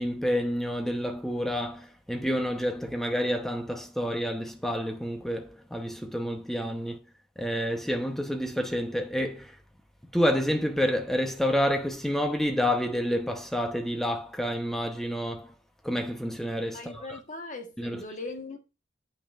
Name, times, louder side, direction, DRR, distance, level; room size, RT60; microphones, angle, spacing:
voice 1, 0.0-7.0 7.4-9.6 10.1-15.5 15.8-17.2 17.8-18.0, equal, ahead, 0.8 m, -29 dB
voice 2, 16.7-18.6, left 2 dB, 45° left, 1.2 m, -39 dB
8.7 x 6.0 x 2.4 m
head